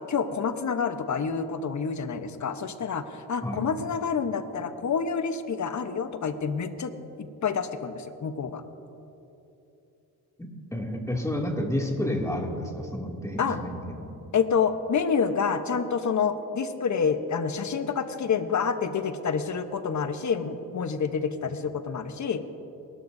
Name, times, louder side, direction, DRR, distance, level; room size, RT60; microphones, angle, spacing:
voice 1, 0.1-3.0 3.3-6.9 7.2-8.6 13.4-13.6 14.3-22.4, left 6 dB, 50° left, 9 dB, 1.0 m, -28 dB
voice 2, 10.4-14.1 21.5-21.6, left 1 dB, 10° left, 0 dB, 2.5 m, -30 dB
22.5 x 12.5 x 2.7 m, 3.0 s
cardioid pair, 65°, 38 cm